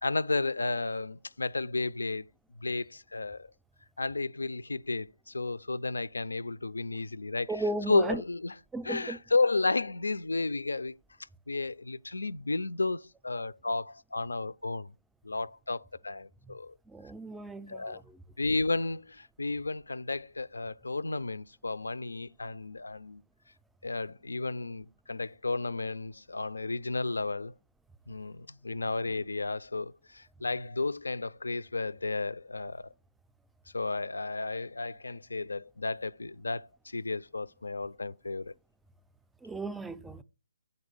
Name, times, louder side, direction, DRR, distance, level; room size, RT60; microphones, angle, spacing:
voice 1, 0.0-2.3 2.6-3.5 4.0-8.5 8.8-11.0 11.5-14.9 15.2-16.7 17.7-18.0 18.4-23.2 23.8-27.5 28.1-32.9 33.7-38.5, left 3 dB, 85° left, 0.3 m, -33 dB
voice 2, 7.5-8.2 8.7-9.2 16.9-18.2 39.4-40.2, right 2 dB, 5° right, 0.3 m, -36 dB
8.4 x 4.0 x 5.1 m
figure-of-eight pair, 150°, 0 cm